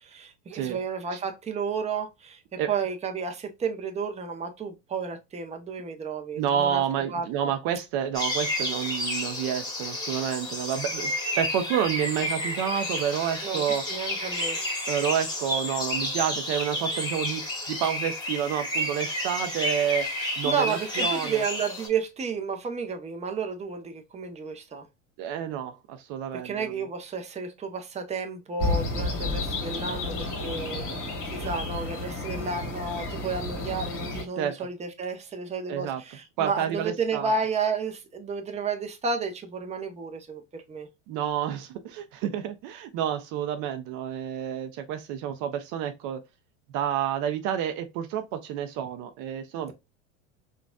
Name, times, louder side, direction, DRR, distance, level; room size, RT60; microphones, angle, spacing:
voice 1, 0.0-6.8 7.1-7.3 13.4-14.6 20.4-24.9 26.4-40.9, right 5 dB, 15° right, 0.7 m, -32 dB
voice 2, 6.4-13.8 14.9-20.1 20.4-21.4 25.2-26.7 34.4-34.7 35.7-36.0 36.4-37.3 41.1-46.2 46.7-49.7, right 9 dB, 50° right, 0.7 m, -29 dB
sound 1, 8.1-21.9, left 1 dB, 10° left, 1.5 m, -31 dB
sound 2, 28.6-34.2, left 2 dB, 35° left, 1.6 m, -31 dB
3.9 x 2.4 x 2.2 m
hypercardioid pair, 95°, 38 cm